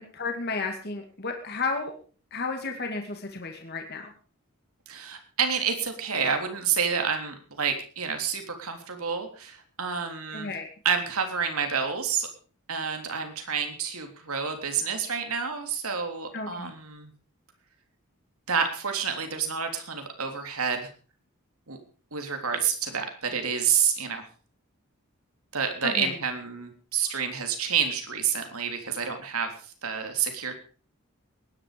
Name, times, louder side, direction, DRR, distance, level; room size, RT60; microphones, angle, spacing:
voice 1, 0.0-1.9 2.3-4.1 10.3-10.7 16.3-16.7 25.8-26.2, left 4 dB, 50° left, 4 dB, 2.2 m, -32 dB
voice 2, 4.9-10.5 10.8-12.3 12.7-17.1 18.5-20.9 21.7-21.8 22.1-24.2 25.5-30.5, right 6 dB, 90° right, 5 dB, 3.4 m, -29 dB
19.0 x 10.5 x 5.1 m, 0.39 s
head